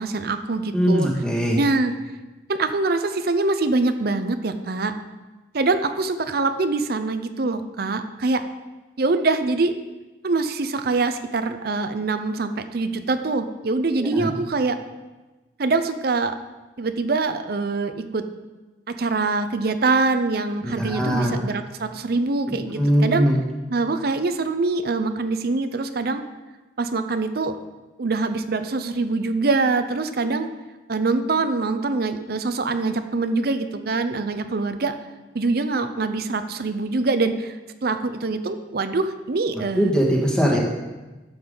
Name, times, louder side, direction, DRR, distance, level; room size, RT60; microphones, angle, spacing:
voice 1, 0.0-1.1 1.5-1.9 2.5-4.9 5.5-8.4 9.0-9.7 10.2-14.8 15.6-16.4 16.8-18.2 18.9-23.2 23.7-26.2 26.8-27.6 28.0-30.5 30.9-35.0 35.3-39.9 40.5-40.6, right 3 dB, 60° right, 9 dB, 0.6 m, -24 dB
voice 2, 0.7-1.6 14.0-14.3 20.6-21.4 22.8-23.4 39.7-40.6, equal, 5° left, -3 dB, 1.9 m, -21 dB
12.5 x 7.1 x 3.9 m, 1.2 s
head